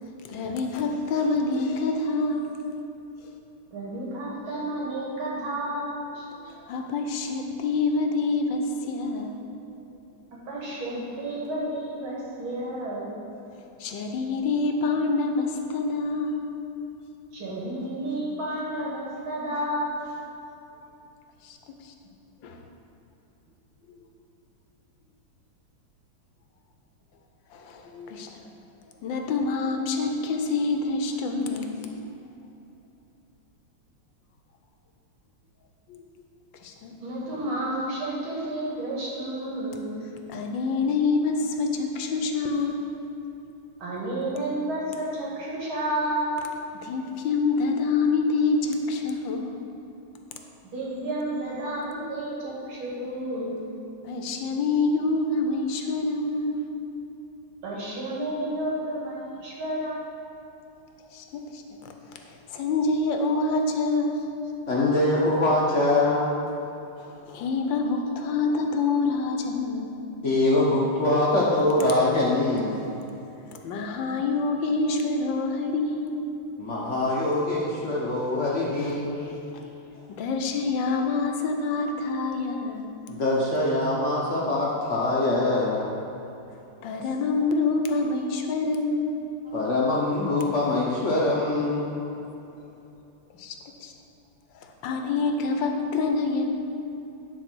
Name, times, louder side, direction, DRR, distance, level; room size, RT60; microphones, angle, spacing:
voice 1, 0.2-2.6 6.7-9.4 13.8-16.4 21.4-21.6 21.8-21.9 22.4-22.6 27.5-28.4 29.0-31.8 35.9-36.0 36.6-36.9 40.3-42.8 46.8-49.6 54.0-56.6 61.1-61.6 62.3-64.2 67.0-70.0 73.6-76.3 80.2-82.9 86.8-89.3 93.4-93.9 94.5-96.4, left 3 dB, 75° left, 4 dB, 1.4 m, -26 dB
voice 2, 3.7-6.5 10.5-13.2 17.3-20.0 37.0-40.0 43.8-46.4 50.6-53.6 57.6-60.2, right 1 dB, 85° right, -5 dB, 2.8 m, -31 dB
voice 3, 64.7-66.3 70.2-72.9 76.6-79.3 83.1-85.9 89.5-91.9, left 2 dB, 50° left, -4 dB, 0.9 m, -23 dB
10.0 x 4.3 x 6.1 m, 2.9 s
omnidirectional pair, 2.2 m